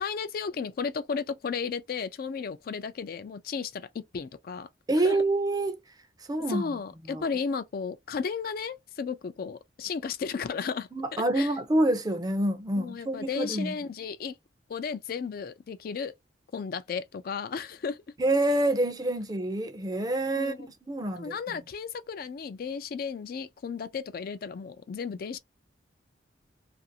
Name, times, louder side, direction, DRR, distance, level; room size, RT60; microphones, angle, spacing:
voice 1, 0.0-4.7 5.0-5.2 6.4-11.5 12.8-14.4 14.7-16.1 16.5-18.0 20.4-20.7 21.1-25.4, left 5 dB, 55° left, 0.3 m, -34 dB
voice 2, 4.9-5.8 6.3-6.8 7.1-7.3 10.9-13.7 18.2-21.6, right 1 dB, 20° right, 0.5 m, -27 dB
2.5 x 2.4 x 2.6 m
head